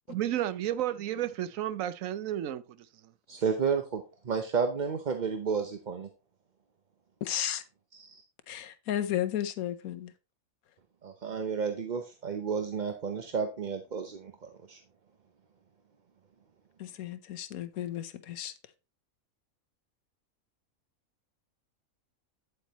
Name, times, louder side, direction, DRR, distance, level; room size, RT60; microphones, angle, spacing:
voice 1, 0.1-2.6, right 12 dB, 70° right, 1.0 m, -32 dB
voice 2, 3.3-6.1 7.9-8.2 11.0-14.8, right 6 dB, 40° right, 0.8 m, -32 dB
voice 3, 7.2-7.6 8.5-10.1 16.8-18.5, left 11 dB, 85° left, 1.2 m, -33 dB
8.8 x 8.0 x 3.0 m
omnidirectional pair, 1.5 m